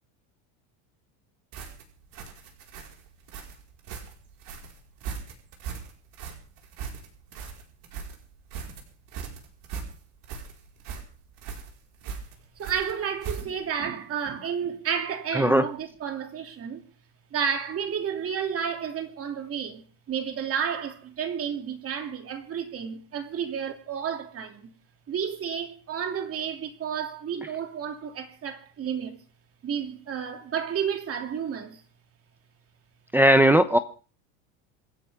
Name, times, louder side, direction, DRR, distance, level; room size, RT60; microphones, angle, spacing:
sound 1, 1.5-13.7, right 6 dB, 55° right, 5.0 m, -39 dB
voice 1, 12.6-16.8 17.3-24.7 25.1-29.2 29.6-31.8, right 7 dB, 35° right, 3.0 m, -31 dB
voice 2, 33.1-33.8, right 1 dB, 5° right, 0.8 m, -18 dB
27.0 x 11.0 x 3.7 m
cardioid pair, 135°, 40 cm